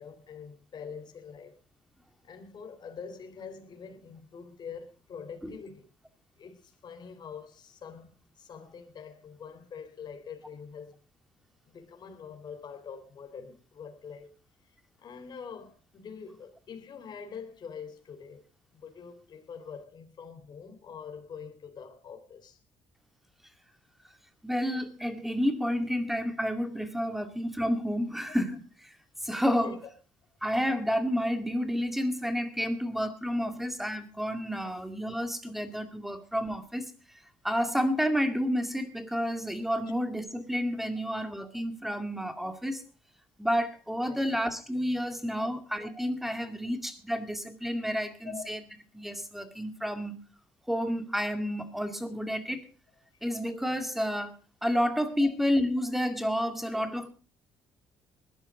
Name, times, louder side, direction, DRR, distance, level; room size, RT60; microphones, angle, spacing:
voice 1, 0.0-1.6 2.2-5.8 6.4-11.0 11.6-14.4 15.0-18.5 18.7-22.6 29.6-29.8 33.4-33.5 44.1-44.3 45.4-45.5 48.2-48.5, left 6 dB, 45° left, 3.9 m, -45 dB
voice 2, 24.4-28.9 29.2-29.8 30.4-36.9 37.4-42.8 43.4-48.6 48.9-50.2 50.7-52.7 53.2-54.4 54.6-57.1, equal, ahead, 2.2 m, -30 dB
20.5 x 12.5 x 3.8 m
cardioid pair, 120°, 10 cm